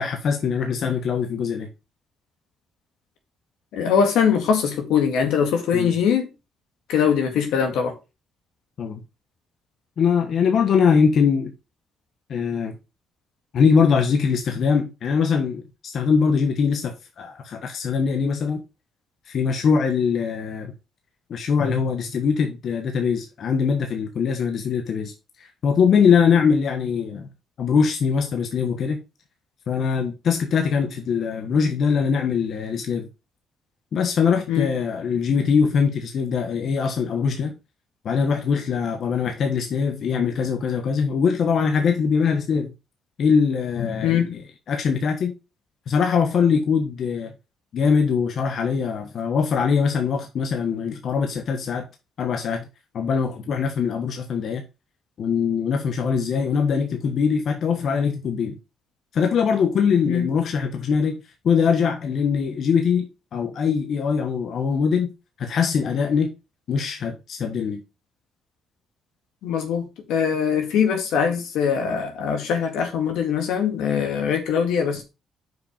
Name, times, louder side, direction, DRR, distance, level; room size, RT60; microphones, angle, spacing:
voice 1, 0.0-1.7 5.7-5.9 8.8-9.0 10.0-11.5 12.3-12.8 13.5-18.6 19.3-20.7 21.3-25.1 25.4-27.3 27.6-29.0 29.7-33.1 33.9-37.5 38.0-42.7 43.2-44.4 44.7-45.3 45.9-47.3 47.7-51.9 52.2-52.7 52.9-54.6 55.2-58.6 59.1-61.2 61.4-63.1 63.3-65.1 65.4-66.3 66.7-67.8, left 6 dB, 60° left, 1.3 m, -22 dB
voice 2, 3.7-6.3 6.9-7.9 34.5-34.7 44.0-44.3 60.1-60.3 69.4-75.0, left 7 dB, 90° left, 2.0 m, -22 dB
6.3 x 5.0 x 5.0 m
cardioid pair, 90°, 0 cm